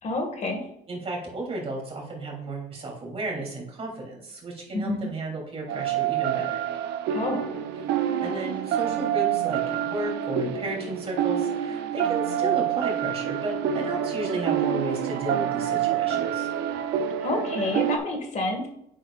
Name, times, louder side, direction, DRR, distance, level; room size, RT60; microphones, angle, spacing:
voice 1, 0.0-0.6 4.7-5.1 7.1-7.4 17.2-18.7, left 2 dB, 45° left, 4 dB, 1.9 m, -28 dB
voice 2, 0.9-6.6 8.2-16.5, right 2 dB, 35° right, -1 dB, 3.2 m, -33 dB
sound 1, 5.7-18.0, right 10 dB, 90° right, 0.8 m, -27 dB
10.5 x 7.9 x 2.5 m, 0.78 s
cardioid pair, 110°, 17 cm